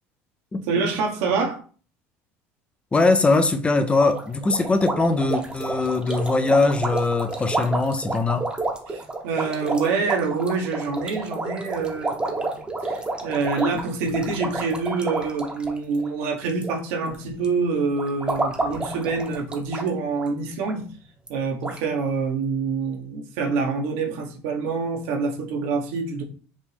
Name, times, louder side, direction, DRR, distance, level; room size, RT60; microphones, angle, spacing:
voice 1, 0.7-1.6 8.9-12.5 12.8-20.9 21.3-26.2, right 4 dB, 85° right, 1.2 m, -26 dB
voice 2, 2.9-8.5, left 3 dB, 20° left, 0.5 m, -21 dB
sound 1, 4.0-16.7 17.0-17.4 18.0-19.9 20.2-20.3 20.6-20.7 21.3-21.4 21.6-21.8, right 2 dB, 15° right, 0.9 m, -30 dB
5.3 x 2.7 x 3.4 m
supercardioid pair, 115°, 6 cm